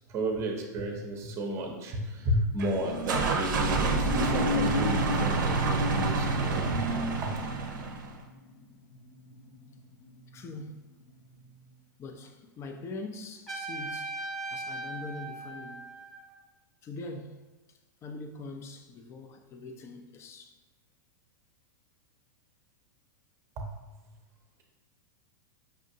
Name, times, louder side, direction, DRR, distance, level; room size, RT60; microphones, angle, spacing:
voice 1, 0.1-6.9 7.2-7.3 23.6-23.7, right 1 dB, 30° right, 0.7 m, -32 dB
sound 1, 1.8-10.8 11.2-11.4, left 4 dB, 75° left, 0.8 m, -36 dB
sound 2, 2.6-8.2, right 4 dB, 80° right, 0.6 m, -28 dB
voice 2, 10.3-10.8 12.0-15.9 16.8-17.4 17.7-20.6, left 2 dB, 25° left, 0.4 m, -43 dB
Trumpet, 13.5-16.3, right 2 dB, 5° left, 0.8 m, -38 dB
5.3 x 2.5 x 2.7 m
hypercardioid pair, 125°, 10 cm